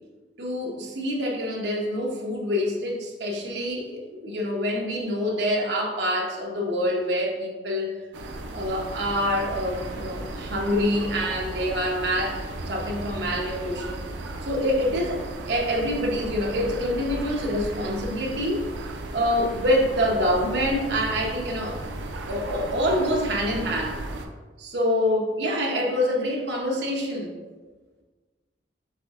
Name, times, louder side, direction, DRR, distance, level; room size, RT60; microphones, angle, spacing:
voice 1, 0.4-7.9 8.5-12.4 12.7-14.0 14.4-15.2 15.5-18.7 19.1-21.8 22.3-24.0 24.6-27.3, equal, 65° right, -1 dB, 0.9 m, -26 dB
sound 1, 8.1-24.3, right 2 dB, 85° right, 0.5 m, -35 dB
5.8 x 3.4 x 2.5 m, 1.3 s
head